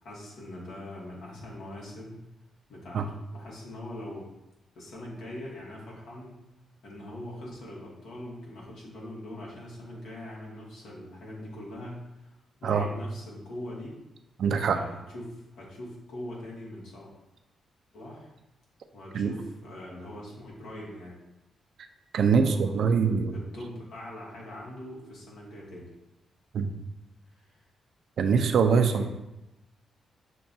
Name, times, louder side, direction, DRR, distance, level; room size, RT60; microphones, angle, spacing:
voice 1, 0.0-2.2 2.7-3.0 3.3-4.3 4.7-6.4 6.8-12.3 12.6-14.0 14.7-17.1 17.9-18.3 18.9-21.2 22.2-22.7 23.3-25.9 27.4-27.6 28.8-29.1, left 1 dB, 85° left, -4 dB, 1.1 m, -42 dB
voice 2, 14.4-14.8 19.1-19.3 22.1-23.3 26.5-26.7 28.2-29.1, right 6 dB, 70° right, 7 dB, 0.3 m, -23 dB
6.6 x 2.3 x 2.6 m, 0.94 s
cardioid pair, 105°, 0 cm